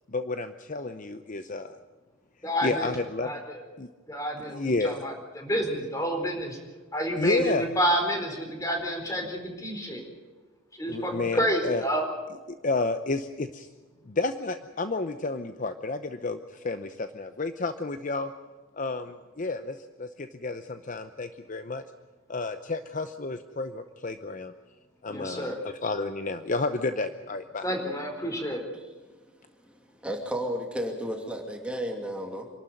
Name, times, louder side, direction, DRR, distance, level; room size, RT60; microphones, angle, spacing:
voice 1, 0.1-1.8 2.6-3.4 3.8-3.9 4.5-5.0 7.2-7.7 10.9-11.8 12.5-13.7 14.1-18.3 18.8-21.8 22.3-24.5 25.0-25.6 25.8-27.7, left 3 dB, 40° left, 9 dB, 0.8 m, -31 dB
voice 2, 2.4-2.9 3.2-3.6 4.1-6.6 6.9-10.0 10.8-12.1 25.1-25.6 27.6-28.6, equal, 15° left, 3 dB, 4.4 m, -29 dB
voice 3, 29.6-32.5, equal, 5° right, 2 dB, 2.6 m, -33 dB
26.5 x 12.5 x 9.4 m, 1.3 s
head